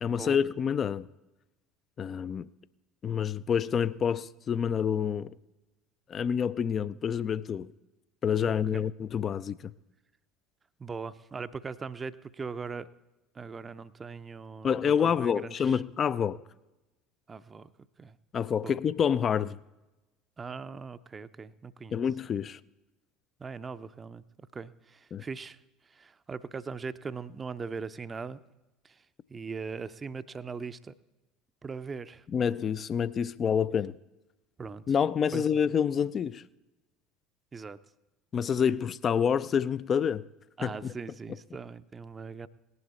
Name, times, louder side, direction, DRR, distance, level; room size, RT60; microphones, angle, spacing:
voice 1, 0.0-1.1 2.0-2.5 3.0-5.3 6.1-7.7 8.2-9.6 14.6-16.4 18.3-19.6 21.9-22.6 25.1-25.2 32.3-33.9 34.9-36.4 38.3-40.2 40.6-40.9, left 7 dB, 35° left, 0.4 m, -27 dB
voice 2, 8.5-8.8 10.8-12.9 13.3-15.8 17.3-17.7 18.0-18.2 18.6-18.8 20.4-22.0 23.4-24.2 24.5-25.6 25.9-28.4 28.8-29.0 29.3-30.9 31.6-32.2 34.6-34.9 35.3-35.4 37.5-37.8 40.6-42.5, right 5 dB, 25° right, 0.6 m, -40 dB
18.5 x 11.0 x 4.2 m
figure-of-eight pair, 65°, 0 cm